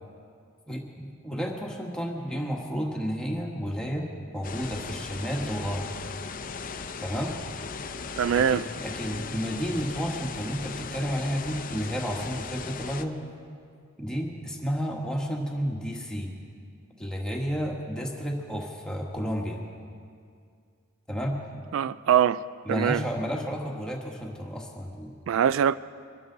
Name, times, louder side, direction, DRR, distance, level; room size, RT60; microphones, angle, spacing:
voice 1, 0.7-5.9 7.0-7.4 8.3-13.2 14.0-16.3 17.0-19.6 21.1-21.4 22.6-25.2, equal, 5° left, 1.6 m, -31 dB
sound 1, 4.4-13.0, left 5 dB, 45° left, 0.6 m, -38 dB
voice 2, 8.2-8.7 21.7-22.4 22.7-23.0 25.3-25.8, right 9 dB, 75° right, 0.3 m, -23 dB
23.0 x 12.5 x 3.9 m
head